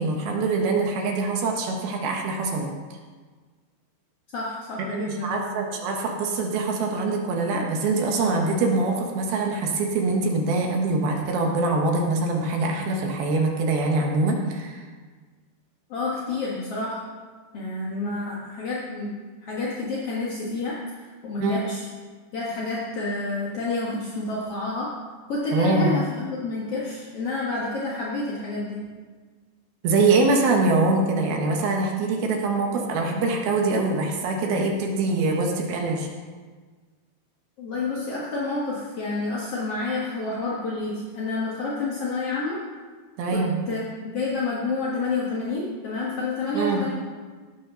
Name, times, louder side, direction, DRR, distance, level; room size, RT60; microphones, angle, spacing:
voice 1, 0.0-2.7 4.9-14.9 21.4-21.6 25.5-26.0 29.8-36.1 43.2-43.6 46.5-46.8, right 3 dB, 70° right, 1 dB, 2.9 m, -24 dB
voice 2, 4.3-5.5 15.9-17.0 17.5-19.1 19.4-20.8 21.2-21.8 22.3-24.9 25.3-28.8 37.6-42.6 43.3-46.9, left 3 dB, 55° left, -6 dB, 1.7 m, -29 dB
16.5 x 6.1 x 6.2 m, 1.4 s
omnidirectional pair, 5.1 m